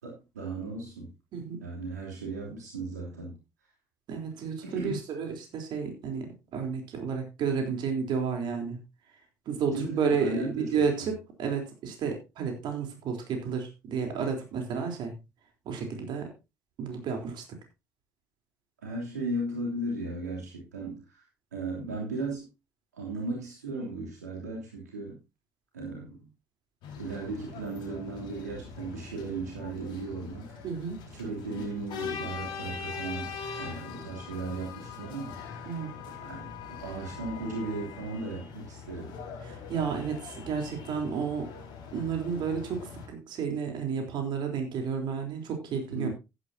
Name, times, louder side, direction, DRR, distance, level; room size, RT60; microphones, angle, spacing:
voice 1, 0.0-1.1 1.6-3.4 4.6-5.0 9.7-10.8 18.8-21.2 21.5-22.5 22.9-25.2 25.7-26.3 27.0-30.5 31.1-33.3 33.6-35.7 36.2-39.2 45.9-46.1, right 2 dB, 90° right, -2 dB, 3.1 m, -36 dB
voice 2, 1.3-1.7 4.1-8.8 9.5-15.1 15.7-16.3 16.8-17.4 30.6-31.0 35.7-35.9 39.4-41.5 41.9-46.1, right 6 dB, 60° right, 3 dB, 3.7 m, -31 dB
sound 1, 26.8-43.1, left 6 dB, 65° left, 4.6 m, -42 dB
15.0 x 9.9 x 2.8 m, 0.26 s
hypercardioid pair, 55°, 9 cm